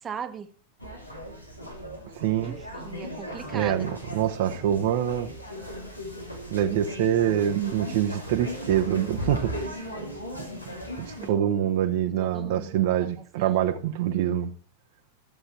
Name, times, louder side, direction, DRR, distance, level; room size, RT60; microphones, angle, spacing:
voice 1, 0.0-0.5 2.4-3.9 11.2-11.7 12.0-12.8 13.4-13.7, right 6 dB, 20° right, 1.2 m, -39 dB
sound 1, 0.8-11.3, equal, 90° left, 2.7 m, -37 dB
voice 2, 2.1-2.6 3.5-5.3 6.5-9.6 11.0-14.5, right 10 dB, 50° right, 0.9 m, -25 dB
14.0 x 7.9 x 4.5 m
figure-of-eight pair, 90°, 0 cm